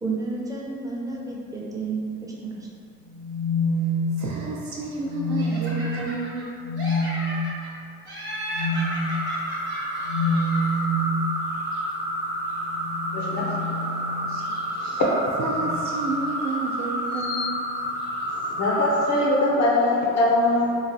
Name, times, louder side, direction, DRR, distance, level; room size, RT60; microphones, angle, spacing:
voice 1, 0.0-2.7, right 3 dB, 10° right, -3 dB, 0.5 m, -31 dB
sound 1, 3.1-4.4 5.0-5.8 6.6-7.1 8.5-8.9 10.0-11.1 12.6-14.4 15.5-15.9 17.2-17.4, left 1 dB, 85° left, 0.9 m, -27 dB
voice 2, 4.2-6.5 14.2-14.6 15.4-17.6, right 3 dB, 65° right, -3 dB, 0.5 m, -31 dB
Laughter, 5.4-6.5 6.8-7.7 8.1-10.8, right 1 dB, 40° right, 1.0 m, -35 dB
sound 2, 8.6-19.5, right 1 dB, 85° right, 0.8 m, -30 dB
voice 3, 13.1-14.1 14.8-15.0 18.3-20.8, left 2 dB, 60° left, -4 dB, 0.5 m, -23 dB
3.2 x 2.3 x 2.6 m, 2.4 s
cardioid pair, 90°, 30 cm